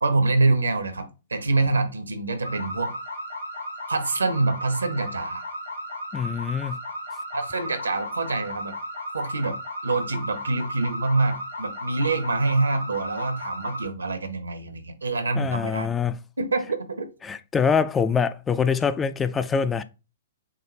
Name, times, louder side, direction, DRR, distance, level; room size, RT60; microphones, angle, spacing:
voice 1, 0.0-2.9 3.9-5.5 7.3-8.8 9.1-9.6 9.8-15.9 16.4-17.1, right 3 dB, 75° right, 1.0 m, -25 dB
sound 1, 2.4-13.9, equal, 75° left, 2.3 m, -35 dB
voice 2, 6.1-6.8 15.4-16.2 17.2-19.8, left 6 dB, 15° left, 0.4 m, -24 dB
6.5 x 2.3 x 3.2 m
figure-of-eight pair, 110°, 0 cm